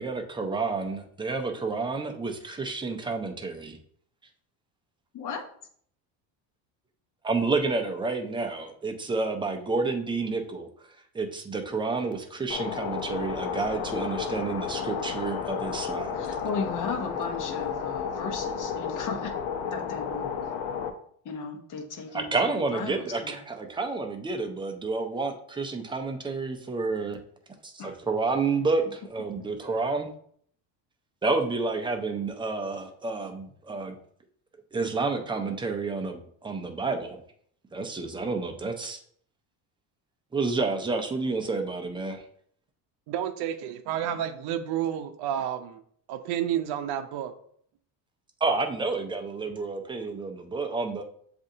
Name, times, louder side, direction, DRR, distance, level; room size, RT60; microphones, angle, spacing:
voice 1, 0.0-3.8 7.2-10.7 11.1-16.3 22.1-27.2 27.6-30.1 31.2-34.0 34.7-37.2 37.7-39.0 40.3-42.3 48.4-51.0, right 3 dB, 10° right, 4 dB, 0.4 m, -30 dB
sound 1, 12.5-20.9, left 7 dB, 80° left, 0.7 m, -32 dB
voice 2, 16.1-19.3 19.7-20.3 21.2-23.4 27.8-28.0 29.4-29.5, left 5 dB, 45° left, 3 dB, 0.9 m, -35 dB
voice 3, 43.1-45.8 46.1-47.3, right 10 dB, 60° right, 7 dB, 0.6 m, -30 dB
7.3 x 2.6 x 2.7 m, 0.62 s
cardioid pair, 120°, 45 cm